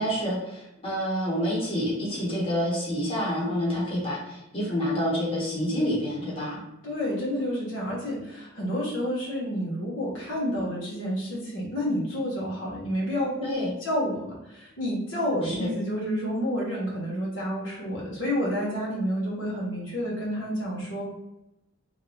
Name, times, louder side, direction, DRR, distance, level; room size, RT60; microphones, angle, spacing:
voice 1, 0.0-6.6 13.4-13.7 15.4-15.7, equal, 30° left, -5 dB, 1.1 m, -28 dB
voice 2, 6.8-13.4 13.8-21.0, equal, 70° left, -4 dB, 1.0 m, -29 dB
3.2 x 2.6 x 2.7 m, 0.90 s
head